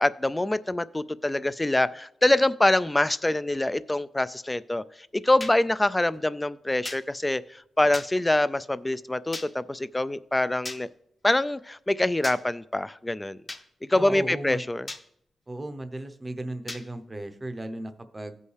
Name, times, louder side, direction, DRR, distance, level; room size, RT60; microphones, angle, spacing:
voice 1, 0.0-4.8 5.1-10.9 11.2-13.4 13.9-14.9, left 1 dB, 15° left, 16 dB, 0.3 m, -25 dB
sound 1, 5.4-5.6 6.9-7.0 7.9-8.1 9.3-9.5 10.7-10.8 12.2-12.4 13.5-13.6 14.9-15.0 16.7-16.8, left 2 dB, 30° left, 0.8 m, -36 dB
voice 2, 13.9-14.6 15.5-18.3, right 1 dB, 20° right, 7 dB, 0.7 m, -36 dB
16.0 x 5.4 x 3.2 m, 0.73 s
wide cardioid pair, 110°, 0 cm